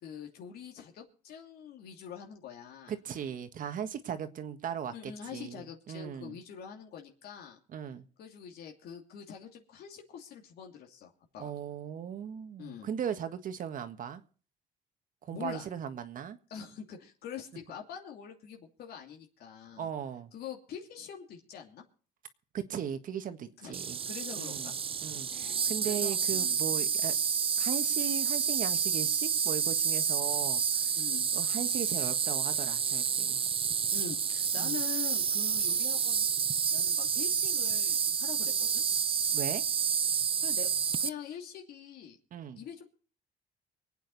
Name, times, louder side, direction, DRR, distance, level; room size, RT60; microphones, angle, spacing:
voice 1, 0.0-3.0 4.9-7.6 8.2-11.5 12.6-12.9 15.3-15.7 16.5-19.9 20.3-21.8 23.6-23.7 24.1-24.7 25.3-26.6 31.0-31.3 33.9-36.4 36.7-38.8 40.4-40.7 41.0-42.2 42.5-42.9, left 8 dB, 70° left, 1 dB, 2.8 m, -44 dB
voice 2, 2.9-6.4 7.7-8.0 11.4-14.2 15.2-16.4 19.8-20.3 22.5-24.0 24.4-24.7 25.0-27.1 27.6-30.9 31.3-33.4 34.6-34.8 39.3-39.6 42.3-42.6, right 8 dB, 55° right, 9 dB, 1.6 m, -38 dB
Insect, 23.7-41.1, right 7 dB, 35° right, 0.7 m, -29 dB
24.5 x 9.1 x 4.1 m, 0.41 s
cardioid pair, 110°, 17 cm